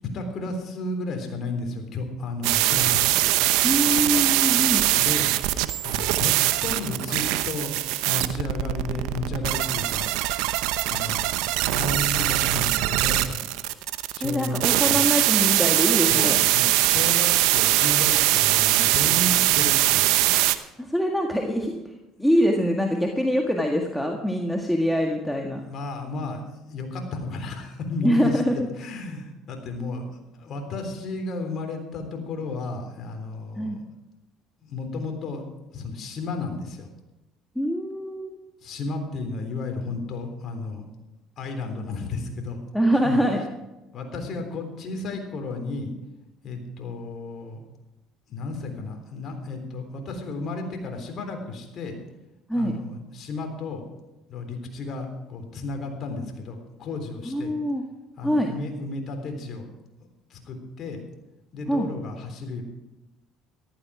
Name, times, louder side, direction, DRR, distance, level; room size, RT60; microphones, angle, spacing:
voice 1, 0.0-3.1 4.9-5.3 5.8-6.3 6.6-7.7 8.0-10.1 10.9-11.4 11.7-13.5 14.1-15.0 16.1-20.2 25.6-28.4 28.8-30.1 30.3-33.8 34.6-35.4 35.7-36.9 38.6-40.8 41.4-42.6 42.9-43.2 43.9-45.9 46.4-47.6 48.3-51.9 52.5-53.8 54.3-57.5 58.2-59.7 60.3-61.0 61.5-62.6, left 3 dB, 55° left, 4 dB, 3.5 m, -33 dB
sound 1, 2.4-20.6, right 16 dB, 80° right, 0.8 m, -22 dB
voice 2, 3.6-4.9 14.2-16.4 20.8-21.8 22.2-25.6 28.0-28.7 33.6-33.8 37.5-38.4 42.7-43.4 52.5-52.7 57.2-57.8 58.2-58.5 61.7-61.9, equal, 5° left, 1 dB, 1.8 m, -24 dB
14.0 x 13.0 x 4.9 m, 1.0 s
supercardioid pair, 80°, 0 cm